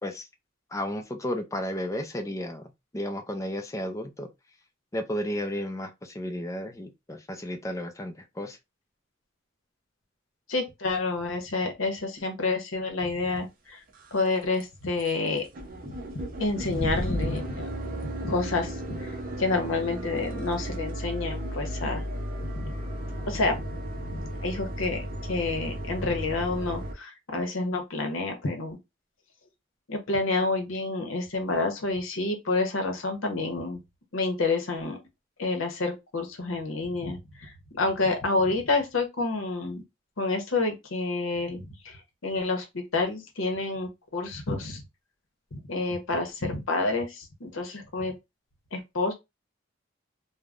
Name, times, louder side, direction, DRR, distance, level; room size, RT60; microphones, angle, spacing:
voice 1, 0.7-2.7 2.9-4.3 4.9-8.6, equal, 15° left, 0.4 m, -33 dB
voice 2, 10.5-13.8 14.1-15.4 16.4-17.7 18.0-22.0 22.6-22.7 23.1-23.6 24.1-28.8 29.9-33.8 34.1-35.0 35.4-39.8 40.2-44.8 45.5-48.1 48.7-49.1, left 3 dB, 90° left, 0.9 m, -29 dB
sound 1, 13.3-13.4 13.9-14.3 14.6-14.7 15.0-15.1 15.4-26.9, equal, 45° right, 0.6 m, -35 dB
3.3 x 2.2 x 2.4 m
head